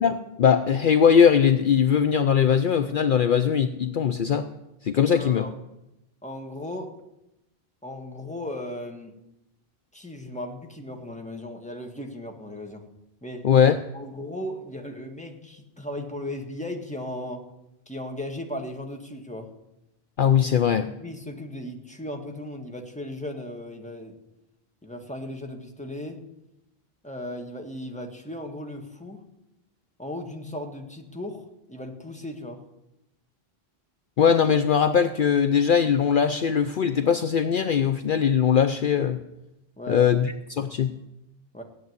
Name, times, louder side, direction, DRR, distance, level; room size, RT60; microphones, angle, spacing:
voice 1, 0.0-4.5 4.8-5.5 13.4-13.8 20.2-20.9 34.2-39.2 39.9-41.0, left 7 dB, 60° left, 10 dB, 0.8 m, -20 dB
voice 2, 5.1-5.5 6.2-7.0 7.8-9.2 9.9-12.9 13.2-13.5 13.9-17.4 17.8-19.5 20.9-24.2 24.8-26.2 27.0-29.2 30.0-32.6 39.8-40.1 41.5-41.6, left 1 dB, 5° left, 2 dB, 1.7 m, -36 dB
16.5 x 7.7 x 9.4 m, 0.91 s
omnidirectional pair, 1.0 m